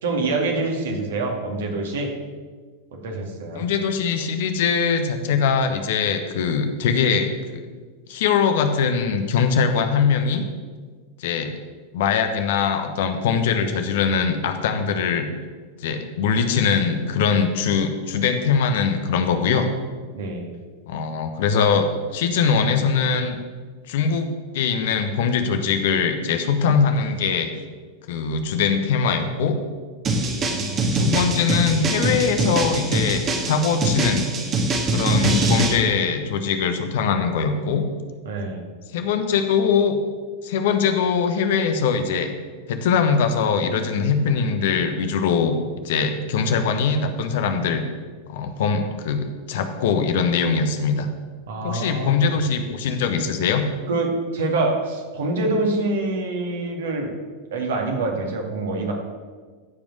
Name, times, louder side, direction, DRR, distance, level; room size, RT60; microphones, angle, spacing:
voice 1, 0.0-2.1 2.9-3.7 20.1-20.5 30.5-31.0 38.3-38.7 51.5-52.2 53.9-57.1 57.5-58.9, right 2 dB, 60° right, 2 dB, 2.2 m, -26 dB
voice 2, 3.5-7.3 8.1-10.4 11.2-11.6 11.9-15.3 15.8-19.7 20.9-23.4 23.9-24.3 24.5-27.5 28.1-29.6 30.9-34.3 34.9-37.9 38.9-40.0 40.4-42.3 42.7-45.6 45.8-47.9 48.3-51.1 51.6-53.6, left 6 dB, 55° left, 7 dB, 1.1 m, -22 dB
sound 1, 30.0-35.8, right 2 dB, 25° right, 1.6 m, -23 dB
14.5 x 5.4 x 6.2 m, 1.5 s
figure-of-eight pair, 90°, 0 cm